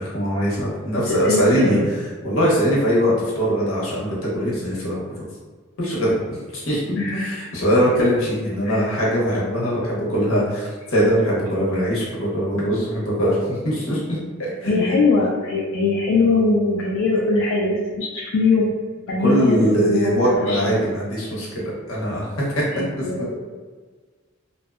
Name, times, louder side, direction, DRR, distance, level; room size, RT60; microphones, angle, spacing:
voice 1, 0.0-1.8 2.2-5.2 5.8-6.2 6.5-14.9 17.1-17.2 19.2-23.0, equal, 80° left, -5 dB, 0.8 m, -21 dB
voice 2, 1.1-1.9 7.0-7.4 8.6-8.9 14.7-18.7 19.1-20.8 22.7-23.3, left 3 dB, 65° left, -4 dB, 0.3 m, -21 dB
2.6 x 2.0 x 2.3 m, 1.4 s
head